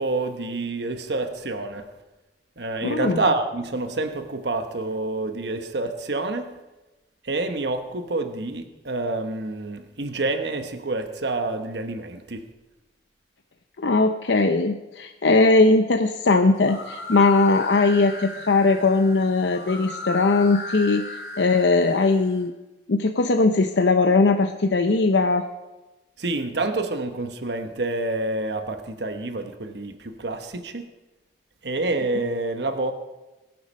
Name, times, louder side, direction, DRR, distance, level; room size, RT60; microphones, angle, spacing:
voice 1, 0.0-1.9 2.6-6.6 7.2-12.4 26.2-30.8 31.6-32.9, right 2 dB, 70° right, 7 dB, 1.1 m, -28 dB
voice 2, 2.8-3.2 13.8-22.5 22.9-25.4, left 3 dB, 85° left, 6 dB, 0.7 m, -20 dB
sound 1, 16.5-22.4, left 2 dB, 65° left, 3.0 m, -36 dB
22.0 x 7.8 x 5.4 m, 1.1 s
head